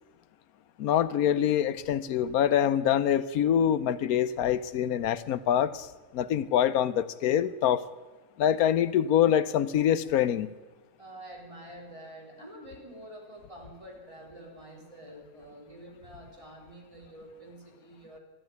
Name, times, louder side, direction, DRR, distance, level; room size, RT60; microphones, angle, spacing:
voice 1, 0.8-5.9 6.1-7.8 8.4-10.5, left 10 dB, 90° left, 14 dB, 1.2 m, -25 dB
voice 2, 11.0-18.2, right 1 dB, 20° right, -1 dB, 3.7 m, -47 dB
13.5 x 10.0 x 9.2 m, 1.2 s
omnidirectional pair, 1.5 m